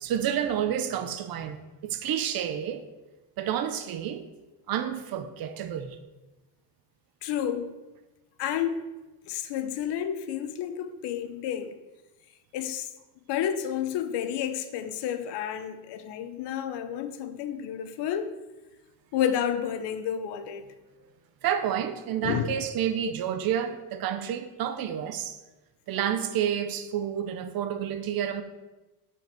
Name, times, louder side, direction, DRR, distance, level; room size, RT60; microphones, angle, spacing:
voice 1, 0.0-2.8 3.4-4.2 4.7-6.0 21.4-25.4 25.9-28.4, right 9 dB, 60° right, 0.9 m, -29 dB
voice 2, 7.2-7.7 8.4-8.8 9.3-11.8 12.5-12.9 13.3-18.4 19.1-20.7 22.2-22.5, left 9 dB, 90° left, 1.0 m, -30 dB
10.5 x 4.9 x 6.0 m
cardioid pair, 170°, 40 cm